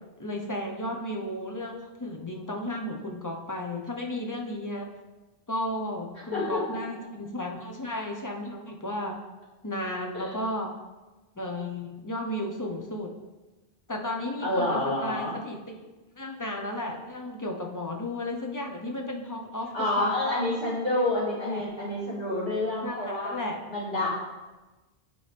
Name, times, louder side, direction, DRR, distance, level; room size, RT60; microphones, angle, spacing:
voice 1, 0.2-4.9 5.5-9.2 9.6-10.7 11.3-13.1 13.9-15.9 16.1-20.1 21.5-21.7 22.8-23.6, left 1 dB, 20° left, 1 dB, 0.7 m, -34 dB
voice 2, 14.4-15.3 19.7-23.4 23.7-24.1, left 1 dB, 60° left, -8 dB, 2.9 m, -28 dB
9.5 x 4.3 x 3.4 m, 1.2 s
omnidirectional pair, 1.1 m